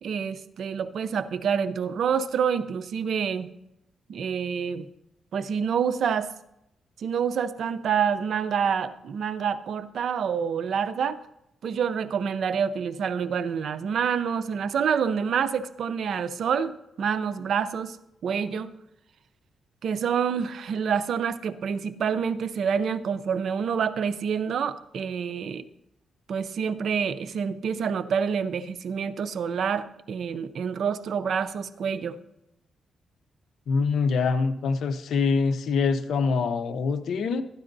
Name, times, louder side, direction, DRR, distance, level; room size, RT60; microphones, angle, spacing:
voice 1, 0.0-3.5 4.1-4.9 5.3-6.3 7.0-11.2 11.6-18.0 18.2-18.7 19.8-25.6 26.3-32.2, right 7 dB, 70° right, 13 dB, 0.5 m, -27 dB
voice 2, 33.7-37.4, left 5 dB, 75° left, 10 dB, 0.6 m, -24 dB
13.0 x 9.8 x 2.6 m, 0.84 s
cardioid pair, 85°, 0 cm